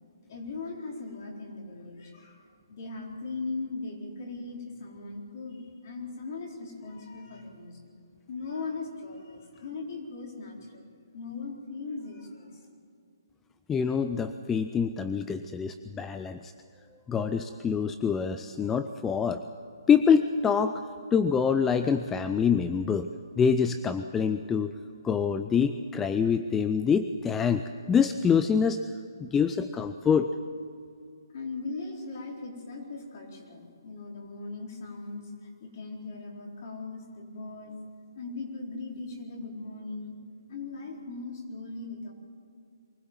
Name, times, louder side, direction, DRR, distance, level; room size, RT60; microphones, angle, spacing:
voice 1, 0.3-2.4 2.7-7.9 8.3-10.8 11.1-12.6 31.3-35.3 35.6-37.8 38.2-40.2 40.5-42.1, left 3 dB, 40° left, 0 dB, 4.2 m, -39 dB
voice 2, 13.7-16.5 17.1-19.4 19.9-20.8 21.1-23.1 23.4-24.7 25.0-28.8 29.2-30.3, left 6 dB, 10° left, 9 dB, 0.4 m, -25 dB
24.0 x 16.5 x 7.3 m, 2.4 s
hypercardioid pair, 165°, 2 cm